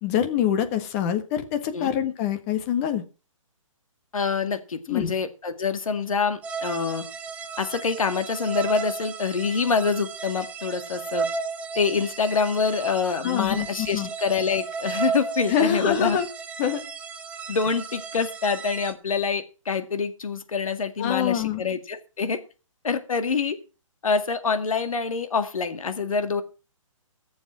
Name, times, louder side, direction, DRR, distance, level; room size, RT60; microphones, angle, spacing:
voice 1, 0.0-3.0 4.9-5.1 13.2-14.1 15.5-16.3 16.6-16.8 21.0-21.6, left 9 dB, 25° left, 1.5 m, -25 dB
voice 2, 4.1-7.0 7.6-11.3 11.8-16.2 17.5-22.4 22.8-23.6 24.0-26.4, left 5 dB, 80° left, 2.0 m, -26 dB
sound 1, 6.4-18.9, right 5 dB, 10° right, 0.7 m, -34 dB
16.5 x 7.2 x 6.2 m
hypercardioid pair, 155°, 17 cm